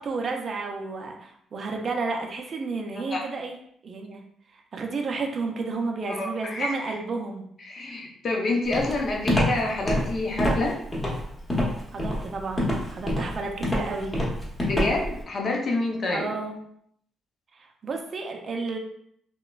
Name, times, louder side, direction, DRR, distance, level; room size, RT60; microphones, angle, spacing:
voice 1, 0.0-3.6 3.8-4.2 4.5-7.4 11.9-14.1 16.1-16.6 17.5-18.8, right 3 dB, 45° right, 2 dB, 0.4 m, -32 dB
voice 2, 6.1-6.7 7.6-10.7 14.6-16.3, left 2 dB, 50° left, 0 dB, 0.6 m, -27 dB
Walk footsteps, 8.7-15.2, equal, 20° left, 0.8 m, -26 dB
2.9 x 2.1 x 2.3 m, 0.69 s
cardioid pair, 90°, 0 cm